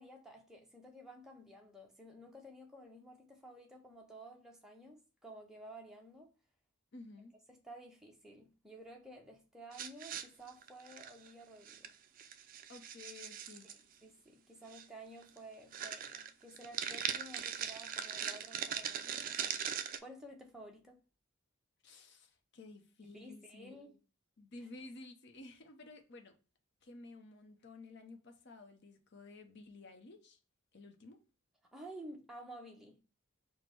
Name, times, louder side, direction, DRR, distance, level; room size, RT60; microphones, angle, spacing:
voice 1, 0.0-6.3 7.5-11.9 13.6-19.7 20.0-21.0 23.0-24.0 31.7-33.0, right 1 dB, 5° right, 0.7 m, -53 dB
voice 2, 6.9-7.3 12.7-13.8 21.8-23.7 24.4-26.4 26.8-30.4 30.7-31.2, left 2 dB, 55° left, 0.7 m, -53 dB
sound 1, 9.7-11.3 11.7-11.9 12.2-13.8 14.7-14.8 15.2-15.4 15.7-20.0, right 8 dB, 40° right, 0.3 m, -40 dB
5.1 x 2.1 x 4.4 m
head